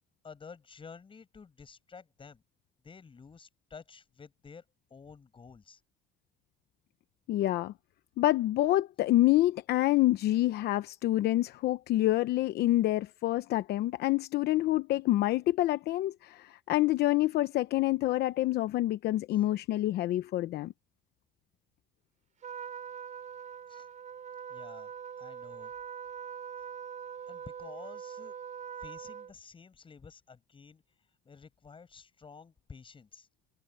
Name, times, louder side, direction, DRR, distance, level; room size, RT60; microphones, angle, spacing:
voice 1, 0.2-2.4 2.8-4.6 4.9-5.8 19.3-19.4 23.7-23.9 24.5-25.7 27.3-28.4 28.8-30.8 31.3-33.3, left 5 dB, 30° left, 7.0 m, -51 dB
voice 2, 7.3-7.7 8.2-20.7, left 15 dB, 75° left, 0.9 m, -27 dB
Trumpet, 22.4-29.3, right 7 dB, 45° right, 8.0 m, -43 dB
cardioid pair, 110°, 17 cm